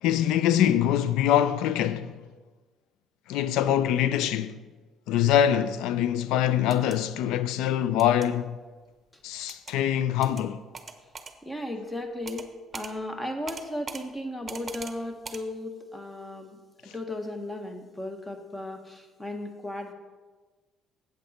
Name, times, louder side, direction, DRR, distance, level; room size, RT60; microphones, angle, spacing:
voice 1, 0.0-2.1 3.3-4.6 5.1-8.6 9.2-10.6, left 10 dB, 80° left, 0.4 m, -24 dB
sound 1, 6.6-7.0 8.0-8.3 9.5-9.8 10.2-10.4 10.7-11.3 12.3-12.5 12.7-12.9 13.5-14.0 14.5-14.9 15.2-15.4, right 4 dB, 30° right, 0.9 m, -40 dB
voice 2, 11.4-12.5 12.7-16.6 16.9-19.9, left 1 dB, 15° left, 1.3 m, -35 dB
8.2 x 8.1 x 4.3 m
supercardioid pair, 65°, 0 cm